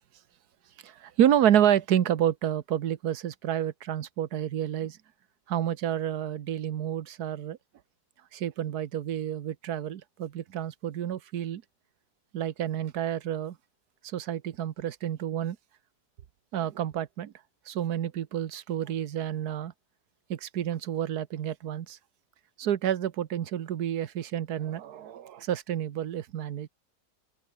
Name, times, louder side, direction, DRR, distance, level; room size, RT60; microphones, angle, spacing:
voice 1, 0.8-5.0 5.5-7.6 8.3-11.6 12.3-13.5 14.0-15.6 16.5-17.3 17.7-19.7 20.3-22.0 22.6-26.7, right 10 dB, 85° right, 1.6 m, -29 dB
omnidirectional pair, 1.6 m